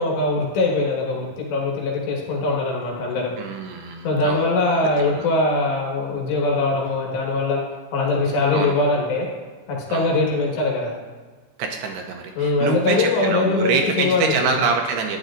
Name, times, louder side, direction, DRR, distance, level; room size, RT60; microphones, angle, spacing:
voice 1, 0.0-3.3 4.0-7.6 7.9-9.3 9.7-10.9 12.4-14.6, left 3 dB, 75° left, -2 dB, 3.7 m, -22 dB
voice 2, 3.4-4.5 5.0-5.3 8.5-8.8 9.9-10.1 11.6-15.2, right 5 dB, 80° right, 3 dB, 2.5 m, -25 dB
12.0 x 9.3 x 2.5 m, 1.4 s
omnidirectional pair, 5.0 m